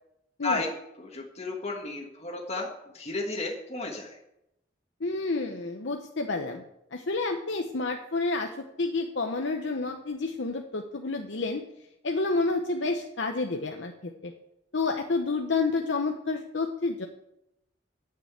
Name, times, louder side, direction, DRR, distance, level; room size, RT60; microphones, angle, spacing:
voice 1, 0.4-4.2, left 2 dB, 35° left, -1 dB, 1.6 m, -33 dB
voice 2, 5.0-6.6 6.9-11.6 12.0-14.3 14.7-17.1, left 3 dB, 65° left, 3 dB, 0.9 m, -29 dB
11.5 x 6.9 x 8.2 m, 0.85 s
head